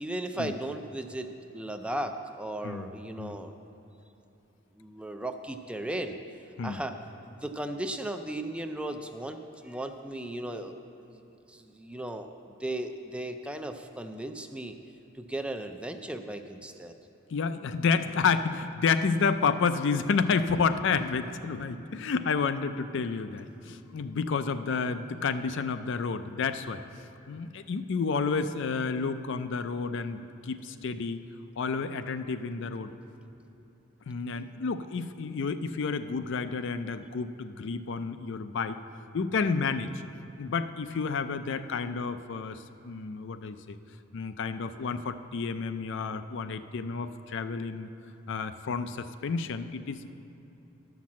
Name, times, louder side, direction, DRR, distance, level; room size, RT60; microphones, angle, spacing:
voice 1, 0.0-3.5 4.7-6.2 6.6-7.0 7.2-11.2 11.5-12.3 12.6-14.8 15.1-16.9 20.5-20.7, right 1 dB, 5° right, 7 dB, 0.4 m, -36 dB
voice 2, 17.3-26.8 27.3-31.2 31.6-32.9 34.1-38.8 39.1-39.9 40.4-43.8 44.1-47.9 48.3-50.1, left 5 dB, 60° left, 11 dB, 0.4 m, -30 dB
11.5 x 5.9 x 7.3 m, 3.0 s
head